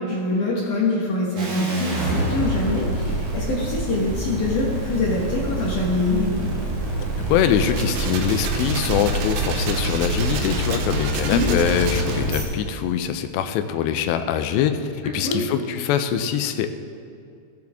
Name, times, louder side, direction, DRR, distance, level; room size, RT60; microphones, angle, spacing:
voice 1, 0.0-6.5 11.3-11.5 15.0-15.4, left 2 dB, 65° left, -4 dB, 2.2 m, -24 dB
sound 1, 1.4-12.4, right 1 dB, 50° right, 2.6 m, -26 dB
voice 2, 7.3-16.7, left 9 dB, 80° left, 8 dB, 2.7 m, -23 dB
sound 2, 7.5-12.4, right 5 dB, 75° right, 2.7 m, -32 dB
16.5 x 8.6 x 3.5 m, 2.4 s
omnidirectional pair, 5.1 m